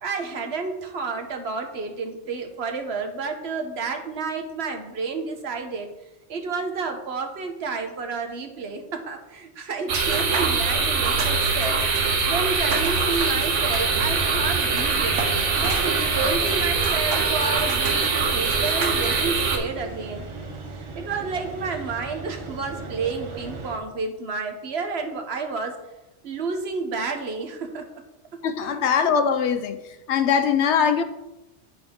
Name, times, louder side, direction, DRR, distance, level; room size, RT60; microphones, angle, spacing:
voice 1, 0.0-5.9 6.3-11.8 12.2-15.2 15.5-20.2 20.7-25.8 26.2-28.0 28.3-28.8, right 4 dB, 65° right, 1.1 m, -30 dB
sound 1, 9.9-19.6, right 4 dB, 80° right, 1.3 m, -23 dB
sound 2, 13.0-23.8, right 4 dB, 35° right, 0.5 m, -37 dB
Female singing, 15.6-21.9, right 2 dB, 5° right, 1.6 m, -39 dB
voice 2, 28.4-29.8 30.1-31.0, left 7 dB, 70° left, 0.9 m, -21 dB
8.6 x 6.0 x 3.6 m
omnidirectional pair, 1.2 m